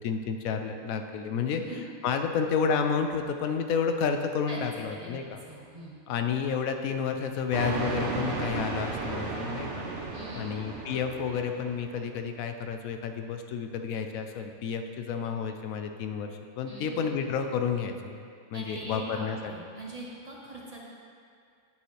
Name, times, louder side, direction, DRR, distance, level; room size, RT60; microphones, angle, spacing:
voice 1, 0.0-5.4 6.1-9.9 10.3-16.3 16.6-19.5, left 6 dB, 80° left, 6 dB, 1.0 m, -30 dB
voice 2, 1.5-1.8 4.5-4.6 4.9-5.2 5.5-6.0 10.1-10.5 16.7-17.0 18.5-20.8, right 1 dB, 30° right, -4 dB, 0.9 m, -42 dB
sound 1, 7.5-12.0, right 3 dB, 60° right, 1.2 m, -34 dB
9.1 x 6.9 x 3.2 m, 2.3 s
omnidirectional pair, 1.4 m